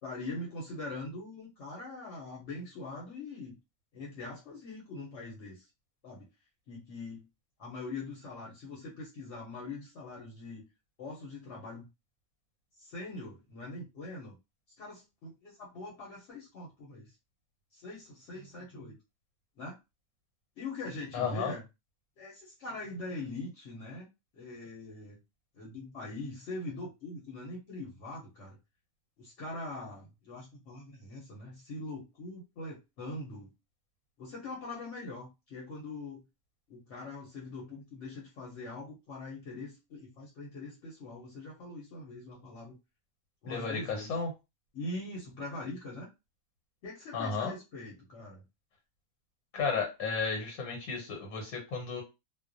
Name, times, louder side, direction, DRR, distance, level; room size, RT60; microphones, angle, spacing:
voice 1, 0.0-3.6 3.9-5.7 6.0-6.3 6.7-7.3 7.6-10.7 11.0-11.9 12.8-14.4 14.8-17.1 17.7-19.0 19.6-19.8 20.6-21.6 22.2-24.1 24.3-25.2 25.5-28.6 29.2-33.5 34.2-36.2 36.7-42.8 43.4-44.2 44.7-46.1 46.8-48.4, left 2 dB, 60° left, -3 dB, 0.9 m, -42 dB
voice 2, 21.1-21.5 43.5-44.3 47.1-47.5 49.5-52.0, left 5 dB, 80° left, 1 dB, 1.2 m, -33 dB
2.3 x 2.1 x 2.5 m, 0.25 s
omnidirectional pair, 1.5 m